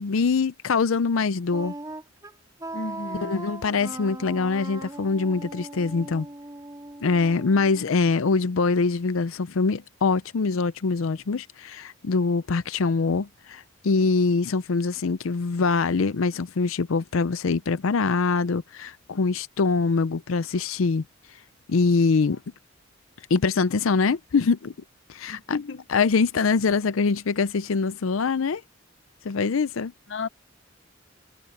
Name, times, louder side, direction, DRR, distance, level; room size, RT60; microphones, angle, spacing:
voice 1, 0.0-1.7 3.2-6.3 7.0-21.0 21.7-22.4 23.3-24.7 25.1-25.6 25.9-28.6 29.2-29.9, left 4 dB, 80° left, 0.5 m, -24 dB
Wind instrument woodwind instrument, 1.5-8.4, right 2 dB, 20° right, 3.4 m, -39 dB
voice 2, 2.7-3.4 25.3-25.8 30.1-30.3, left 3 dB, 60° left, 0.9 m, -33 dB
head